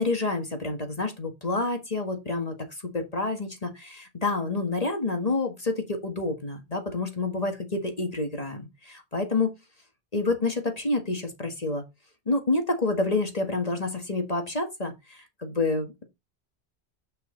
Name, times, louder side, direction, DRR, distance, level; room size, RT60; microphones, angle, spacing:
voice 1, 0.0-2.5 2.9-9.5 10.1-11.8 12.3-16.0, left 3 dB, 35° left, 1.8 m, -28 dB
7.7 x 5.6 x 3.9 m
omnidirectional pair, 1.1 m